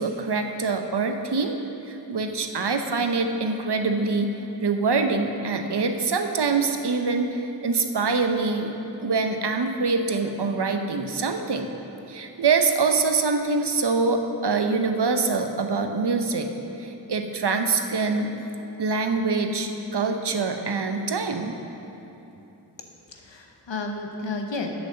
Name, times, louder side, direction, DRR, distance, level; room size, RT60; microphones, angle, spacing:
voice 1, 0.0-1.6 1.9-4.4 4.6-8.7 9.0-11.7 12.1-16.5 16.8-18.3 18.8-21.5, right 4 dB, 65° right, 6 dB, 0.8 m, -24 dB
voice 2, 22.8-24.7, left 3 dB, 85° left, 3 dB, 1.0 m, -33 dB
8.0 x 6.5 x 6.6 m, 2.9 s
wide cardioid pair, 40°, 43 cm